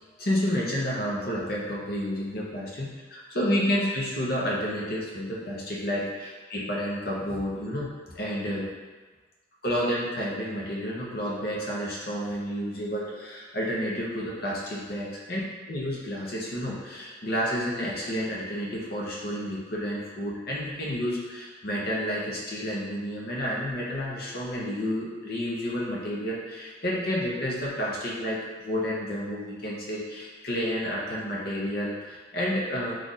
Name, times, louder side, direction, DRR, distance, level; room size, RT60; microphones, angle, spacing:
voice 1, 0.2-7.9 8.1-8.7 9.6-15.4 15.7-33.0, equal, 50° left, -4 dB, 0.8 m, -30 dB
3.3 x 2.5 x 3.9 m, 1.3 s
head